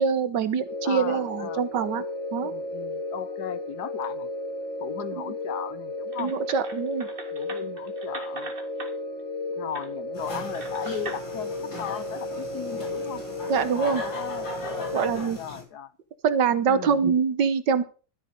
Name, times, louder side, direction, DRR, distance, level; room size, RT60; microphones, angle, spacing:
voice 1, 0.0-2.0 2.3-2.5 5.2-5.3 6.2-7.1 13.5-14.0 14.9-15.4 16.2-17.8, right 6 dB, 70° right, 1.6 m, -24 dB
sound 1, 0.6-15.1, left 2 dB, 40° left, 1.9 m, -34 dB
voice 2, 0.8-1.7 2.4-4.3 4.8-6.3 7.3-8.5 9.6-13.2 13.7-15.9 16.7-17.0, left 9 dB, 65° left, 1.2 m, -37 dB
sound 2, 6.1-8.9 9.7-9.9 10.5-11.2, right 2 dB, 30° right, 2.0 m, -40 dB
sound 3, 10.1-15.6, left 2 dB, 80° left, 4.9 m, -38 dB
13.5 x 8.1 x 5.2 m
omnidirectional pair, 2.0 m